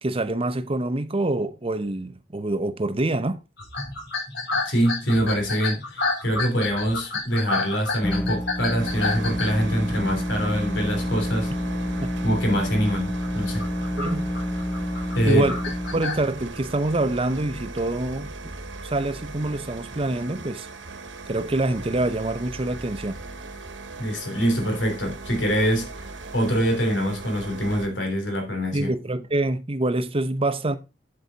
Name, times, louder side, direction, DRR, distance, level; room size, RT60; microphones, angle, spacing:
voice 1, 0.0-3.4 12.0-12.1 14.0-14.3 15.3-15.6 15.9-18.3 18.8-20.7 21.3-23.2 28.7-30.8, right 2 dB, 30° right, 0.8 m, -25 dB
sound 1, 3.6-10.2 10.8-11.2 11.5-11.9 12.3-12.4 13.0-16.3, left 3 dB, 70° left, 6.2 m, -30 dB
voice 2, 4.6-11.5 12.2-13.7 15.1-15.4 24.0-26.1 26.3-28.9, equal, 85° left, 3.2 m, -24 dB
sound 2, 8.0-16.1, left 1 dB, 10° left, 0.4 m, -29 dB
sound 3, 8.8-27.9, right 3 dB, 75° right, 1.2 m, -39 dB
8.2 x 7.9 x 4.0 m
head